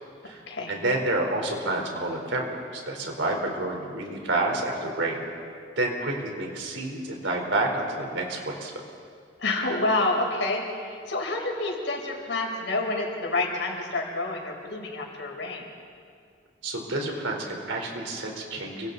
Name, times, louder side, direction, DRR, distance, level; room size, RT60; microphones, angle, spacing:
voice 1, 0.7-5.2 5.8-8.7 16.6-18.9, right 2 dB, 90° right, 1 dB, 4.0 m, -29 dB
voice 2, 9.4-15.6, left 2 dB, 70° left, 0 dB, 4.4 m, -28 dB
29.5 x 25.0 x 4.1 m, 2.3 s
head